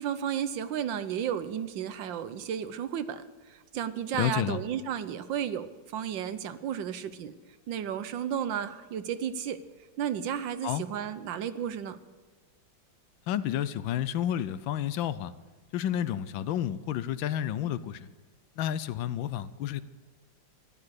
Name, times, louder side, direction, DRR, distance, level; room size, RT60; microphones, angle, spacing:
voice 1, 0.0-7.3 7.7-9.6 10.0-12.0, right 9 dB, 75° right, 12 dB, 1.6 m, -33 dB
voice 2, 4.1-4.6 10.6-10.8 13.3-15.3 15.7-18.1 18.6-19.8, left 11 dB, 85° left, 15 dB, 1.4 m, -30 dB
14.5 x 12.0 x 6.5 m, 1.4 s
omnidirectional pair, 2.0 m